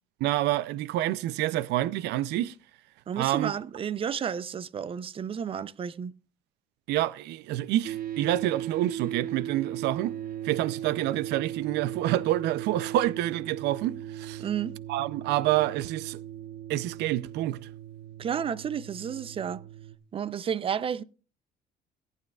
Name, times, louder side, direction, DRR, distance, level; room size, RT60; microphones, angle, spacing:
voice 1, 0.2-2.5 3.2-3.5 6.9-10.1 10.4-14.4 14.9-16.2 16.7-17.6, right 14 dB, 85° right, 0.5 m, -28 dB
voice 2, 3.1-6.1 14.4-14.7 18.2-19.6 20.1-21.0, right 8 dB, 35° right, 0.5 m, -31 dB
sound 1, 7.8-20.0, right 11 dB, 60° right, 1.2 m, -38 dB
18.0 x 9.1 x 2.3 m
cardioid pair, 110°, 17 cm